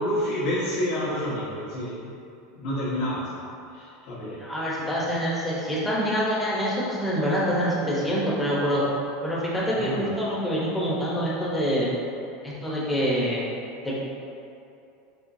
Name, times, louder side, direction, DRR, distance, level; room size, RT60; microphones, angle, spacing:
voice 1, 0.0-2.1 2.5-3.4 3.7-4.4 9.7-10.1, equal, 60° left, -12 dB, 1.2 m, -29 dB
voice 2, 4.4-8.8 9.2-11.9 12.4-13.4 13.8-14.0, equal, 10° left, -7 dB, 0.9 m, -26 dB
4.7 x 3.1 x 2.7 m, 2.6 s
supercardioid pair, 135°, 0 cm